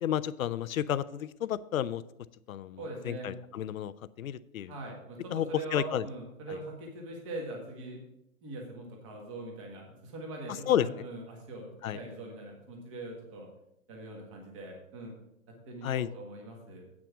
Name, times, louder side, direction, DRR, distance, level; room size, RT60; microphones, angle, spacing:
voice 1, 0.0-2.0 2.5-3.9 4.2-4.7 5.3-5.5 5.7-6.0 6.5-6.6 10.7-10.9 11.8-12.0 15.8-16.1, left 10 dB, 75° left, 17 dB, 0.6 m, -31 dB
voice 2, 2.8-3.4 4.7-8.0 8.4-13.5 13.9-15.1 15.7-16.8, right 2 dB, 25° right, 0 dB, 1.7 m, -42 dB
8.7 x 6.1 x 6.0 m, 0.83 s
hypercardioid pair, 170°, 41 cm